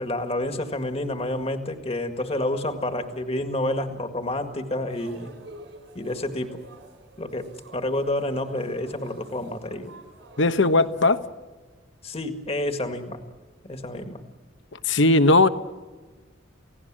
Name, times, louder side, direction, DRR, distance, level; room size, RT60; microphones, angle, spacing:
voice 1, 0.0-5.3 6.0-6.6 7.2-9.9 12.0-13.2 13.6-14.2, left 1 dB, 30° left, 7 dB, 1.8 m, -29 dB
sound 1, 4.9-11.1, right 1 dB, 70° right, 5.1 m, -49 dB
voice 2, 10.4-11.2 14.8-15.5, left 2 dB, 70° left, 11 dB, 1.1 m, -18 dB
29.0 x 17.0 x 7.5 m, 1.3 s
head